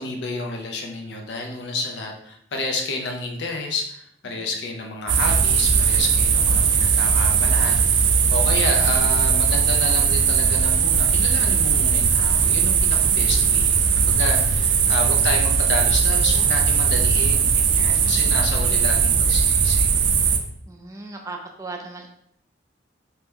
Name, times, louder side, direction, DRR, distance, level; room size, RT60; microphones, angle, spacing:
voice 1, 0.0-19.9, left 2 dB, 75° left, 2 dB, 0.5 m, -30 dB
sound 1, 5.1-20.4, right 6 dB, 85° right, 0.4 m, -19 dB
voice 2, 20.7-22.1, right 3 dB, 20° right, 1 dB, 0.4 m, -37 dB
2.9 x 2.2 x 3.4 m, 0.70 s
head